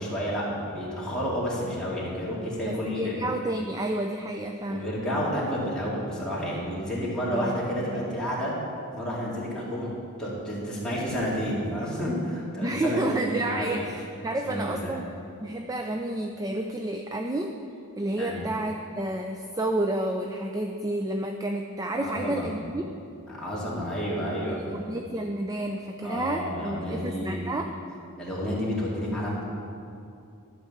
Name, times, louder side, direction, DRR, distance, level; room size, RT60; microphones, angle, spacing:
voice 1, 0.0-3.2 4.7-8.5 8.9-9.9 10.2-13.9 14.4-15.0 18.1-18.4 22.0-22.5 23.3-24.6 26.0-27.5 28.2-29.4, equal, 5° left, -8 dB, 2.3 m, -30 dB
voice 2, 2.7-5.0 7.3-7.6 7.9-8.1 12.6-15.1 15.4-17.5 18.0-23.0 24.4-27.7, right 1 dB, 15° right, 4 dB, 0.4 m, -30 dB
12.0 x 4.7 x 7.2 m, 2.6 s
head